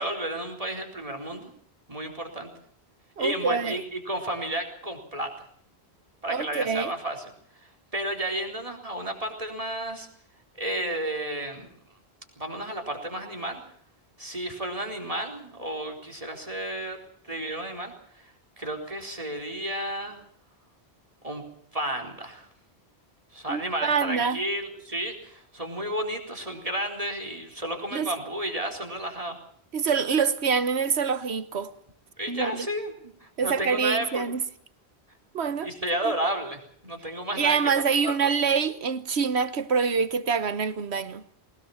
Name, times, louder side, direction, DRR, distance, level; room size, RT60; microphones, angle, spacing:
voice 1, 0.0-1.5 1.9-2.5 3.2-5.3 6.2-7.3 7.9-10.1 10.6-11.7 12.4-13.6 14.2-17.0 17.2-20.2 21.2-21.5 21.7-22.5 23.3-29.4 32.2-34.2 35.6-37.6 38.0-38.2, right 1 dB, 35° right, 4.3 m, -32 dB
voice 2, 3.2-3.8 6.3-6.9 23.5-24.4 27.9-28.1 29.7-31.7 32.3-32.7 33.4-34.4 35.3-35.7 36.0-36.1 37.3-41.2, right 6 dB, 80° right, 1.4 m, -26 dB
21.0 x 19.5 x 7.3 m
omnidirectional pair, 1.1 m